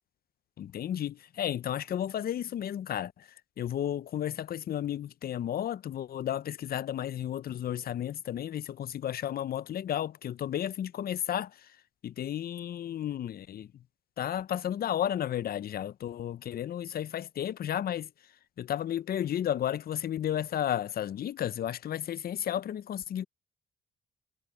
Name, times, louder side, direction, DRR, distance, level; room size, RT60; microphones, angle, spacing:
voice 1, 0.6-3.3 3.6-11.5 12.0-13.7 14.2-18.1 18.6-23.2, left 10 dB, 50° left, 0.5 m, -33 dB
cardioid pair, 90°, 20 cm